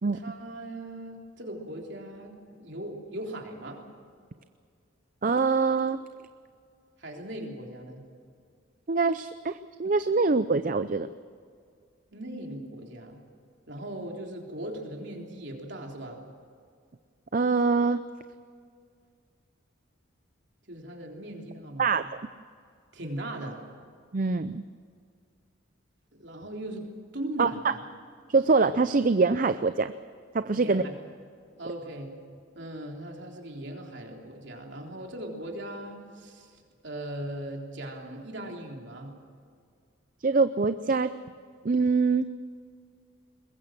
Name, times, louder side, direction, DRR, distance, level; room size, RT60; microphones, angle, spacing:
voice 1, 0.1-3.8 7.0-8.0 12.1-13.2 13.7-16.2 20.7-21.9 22.9-23.6 26.1-26.9 27.1-27.8 30.5-30.9 31.6-32.1 32.5-39.1, right 1 dB, 55° right, 1 dB, 3.7 m, -39 dB
voice 2, 5.2-6.0 8.9-11.1 17.3-18.0 21.8-22.2 24.1-24.6 27.4-27.7 28.3-29.9 30.3-30.8 40.2-41.1 41.6-42.2, right 4 dB, 40° right, 12 dB, 0.5 m, -24 dB
21.5 x 21.0 x 7.6 m, 2.2 s
head